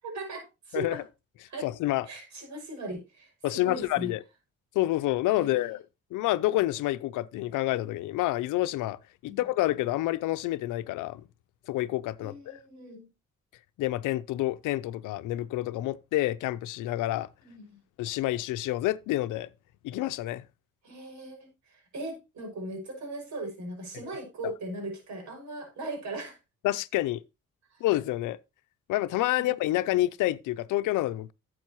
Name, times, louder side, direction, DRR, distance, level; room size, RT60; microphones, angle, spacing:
voice 1, 0.0-1.0 1.5-1.7 2.1-4.1 5.4-5.7 9.3-9.4 12.2-13.1 17.4-17.8 20.8-26.4 29.4-29.5, right 1 dB, 65° right, 5.9 m, -39 dB
voice 2, 1.6-2.1 3.4-4.2 4.7-5.8 6.1-9.0 9.2-11.2 11.7-12.6 13.8-17.3 18.0-19.5 19.8-20.4 26.6-27.2 27.8-28.4 28.9-31.3, left 16 dB, 90° left, 0.6 m, -28 dB
12.0 x 7.8 x 3.0 m
cardioid pair, 90°, 30 cm